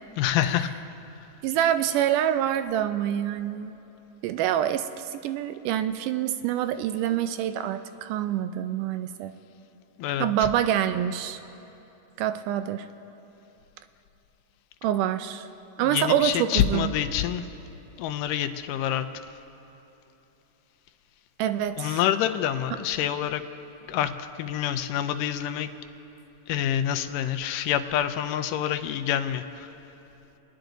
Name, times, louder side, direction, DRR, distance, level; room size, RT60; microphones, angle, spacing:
voice 1, 0.2-0.7 10.0-10.5 15.8-17.5 18.0-19.1 21.8-23.4 23.9-25.7 26.5-29.7, left 10 dB, 85° left, 10 dB, 2.2 m, -27 dB
voice 2, 1.4-3.7 4.2-9.3 10.2-11.4 12.2-12.9 14.8-15.5 15.8-16.9 21.4-22.0, right 10 dB, 80° right, 10 dB, 2.0 m, -26 dB
29.0 x 10.5 x 3.9 m, 3.0 s
omnidirectional pair, 3.8 m